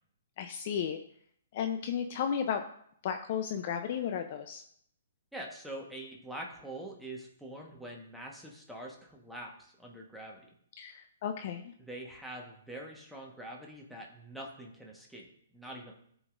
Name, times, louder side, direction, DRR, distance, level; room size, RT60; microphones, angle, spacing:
voice 1, 0.4-1.0 1.5-2.6 3.0-4.6 10.8-11.7, left 8 dB, 50° left, 7 dB, 0.5 m, -34 dB
voice 2, 5.3-10.4 11.8-15.9, right 1 dB, ahead, -2 dB, 1.2 m, -44 dB
14.0 x 5.0 x 2.5 m, 0.66 s
hypercardioid pair, 140°, 0 cm